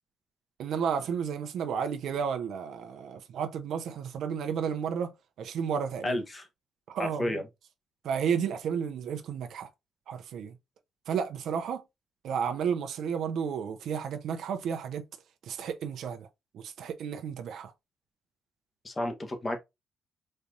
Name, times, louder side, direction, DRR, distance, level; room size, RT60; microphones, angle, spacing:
voice 1, 0.6-5.1 5.4-6.2 6.9-7.4 8.0-9.7 10.1-10.6 11.1-11.8 12.2-15.0 15.5-16.3 16.5-17.7, right 7 dB, 75° right, 0.8 m, -32 dB
voice 2, 6.0-6.5 7.0-7.4 18.8-19.6, left 1 dB, 25° left, 1.4 m, -31 dB
4.2 x 3.4 x 2.5 m
cardioid pair, 90°, 0 cm